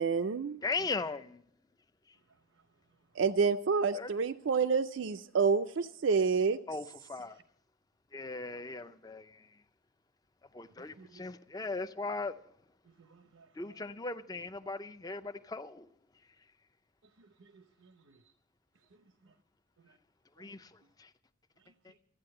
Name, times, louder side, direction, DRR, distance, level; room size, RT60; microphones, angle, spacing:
voice 1, 0.0-0.6 3.2-6.6, right 5 dB, 70° right, 0.4 m, -28 dB
voice 2, 0.6-1.4 3.9-4.1 6.7-7.4 8.1-9.4 10.5-12.4 13.6-15.9 20.4-20.7 21.0-21.1, left 3 dB, 20° left, 0.4 m, -38 dB
voice 3, 12.9-13.8 17.2-18.2 19.8-19.9 20.4-20.5, right 4 dB, 85° right, 0.8 m, -60 dB
14.0 x 9.2 x 7.7 m
head